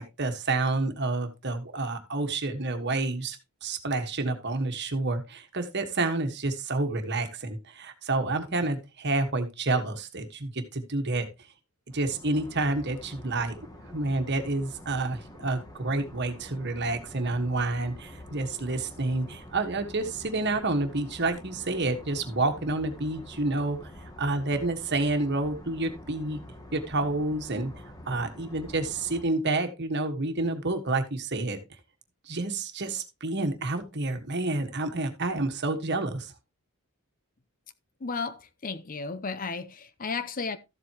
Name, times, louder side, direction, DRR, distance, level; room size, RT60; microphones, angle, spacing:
voice 1, 0.0-3.4 3.6-11.3 11.9-13.5 13.9-26.4 26.7-31.6 32.2-36.3, right 2 dB, 50° right, 1.5 m, -29 dB
sound 1, 11.9-29.2, left 1 dB, 15° left, 1.4 m, -47 dB
voice 2, 38.0-40.6, left 4 dB, 40° left, 0.6 m, -34 dB
13.5 x 7.7 x 2.9 m
head